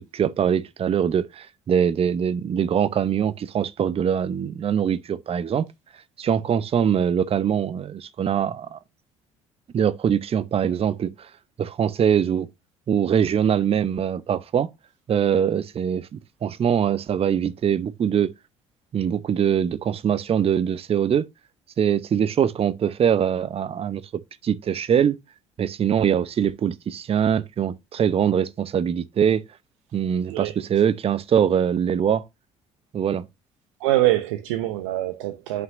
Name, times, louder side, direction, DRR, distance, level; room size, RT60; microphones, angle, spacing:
voice 1, 0.0-5.7 6.2-8.8 9.7-11.3 11.6-12.5 12.9-14.7 15.1-18.3 18.9-21.2 21.8-24.0 24.4-25.2 25.6-29.4 29.9-32.2 32.9-33.3, right 8 dB, 35° right, 0.7 m, -23 dB
voice 2, 33.8-35.6, right 15 dB, 75° right, 0.7 m, -24 dB
11.0 x 5.9 x 2.6 m
hypercardioid pair, 55°, 16 cm